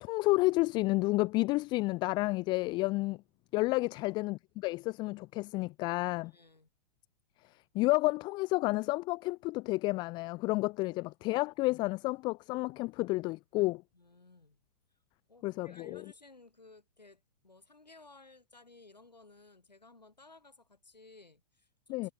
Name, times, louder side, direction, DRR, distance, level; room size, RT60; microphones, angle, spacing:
voice 1, 0.0-3.2 3.5-6.3 7.7-13.8 15.4-16.0 21.9-22.1, left 22 dB, 20° left, 0.4 m, -30 dB
voice 2, 3.9-4.3 6.2-6.7 13.9-14.6 14.9-15.0 15.3-22.1, left 3 dB, 85° left, 4.9 m, -58 dB
figure-of-eight pair, 105°, 21 cm